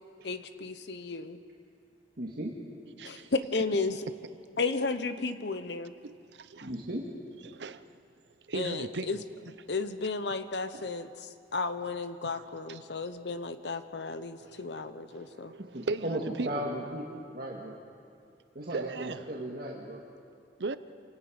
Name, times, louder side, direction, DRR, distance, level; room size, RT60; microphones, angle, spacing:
voice 1, 0.2-1.4 3.0-4.0 4.6-5.9 8.5-9.2 9.7-15.5, left 3 dB, 75° left, 1.0 m, -33 dB
voice 2, 2.2-2.5 6.6-7.1 15.7-17.8 18.6-20.0, right 1 dB, 55° right, 1.9 m, -36 dB
voice 3, 3.0-3.3 6.0-6.7 7.5-7.8 8.5-9.1 10.7-10.8 12.2-12.9 14.4-16.6 18.7-19.2 20.6-20.8, right 3 dB, 80° right, 0.7 m, -38 dB
28.0 x 18.5 x 5.2 m
head